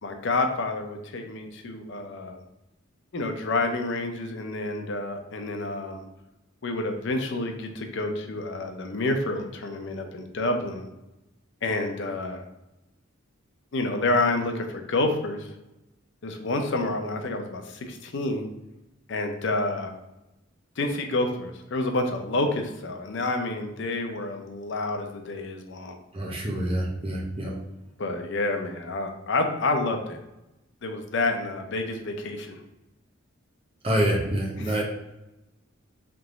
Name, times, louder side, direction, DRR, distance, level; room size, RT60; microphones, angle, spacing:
voice 1, 0.0-2.4 3.1-6.0 6.6-10.9 11.6-12.4 13.7-15.5 16.2-18.5 19.1-19.9 20.8-26.0 28.0-30.2 30.8-32.6 34.6-34.8, left 2 dB, 60° left, 4 dB, 0.5 m, -28 dB
voice 2, 26.1-27.5 33.8-34.8, right 1 dB, 30° right, -2 dB, 0.9 m, -26 dB
3.4 x 3.0 x 3.8 m, 0.95 s
head